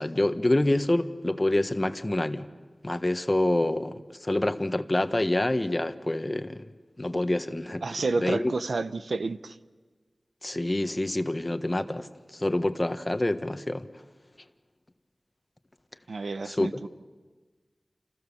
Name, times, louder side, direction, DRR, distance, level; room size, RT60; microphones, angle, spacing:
voice 1, 0.0-2.5 2.8-6.7 7.0-7.8 8.2-8.5 10.4-13.8 16.5-16.8, left 1 dB, 25° left, 1.4 m, -27 dB
voice 2, 7.8-9.6 16.1-16.9, right 3 dB, 85° right, 0.9 m, -30 dB
29.0 x 28.5 x 7.2 m
wide cardioid pair, 65°, 0 cm